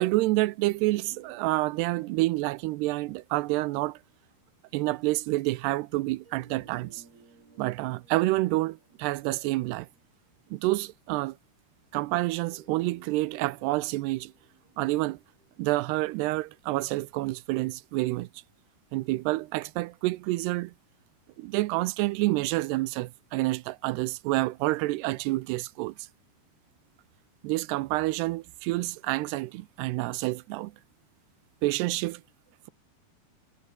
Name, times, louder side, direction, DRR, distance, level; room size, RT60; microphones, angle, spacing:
voice 1, 0.0-4.0 4.7-7.0 7.6-9.9 10.5-11.4 11.9-14.3 14.8-15.2 15.6-18.3 18.9-20.7 21.4-25.9 27.4-30.7 31.6-32.2, right 19 dB, 85° right, 2.8 m, -28 dB
sound 1, 0.8-4.7 6.2-10.7 12.1-17.3, right 4 dB, 65° right, 9.9 m, -60 dB
omnidirectional pair, 4.8 m